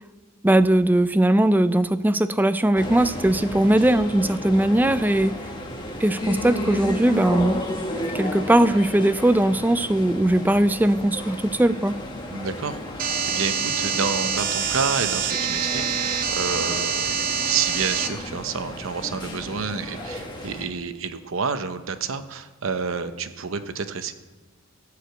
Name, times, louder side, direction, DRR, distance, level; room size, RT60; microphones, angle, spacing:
voice 1, 0.4-5.3 6.0-7.6 8.1-11.9, right 1 dB, 10° right, 13 dB, 0.3 m, -19 dB
sound 1, 2.8-20.7, left 1 dB, 20° left, 1.4 m, -33 dB
voice 2, 12.3-24.1, right 5 dB, 75° right, 10 dB, 0.8 m, -29 dB
sound 2, 13.0-18.1, right 6 dB, 45° right, 0.9 m, -25 dB
14.5 x 5.0 x 7.9 m, 1.4 s
head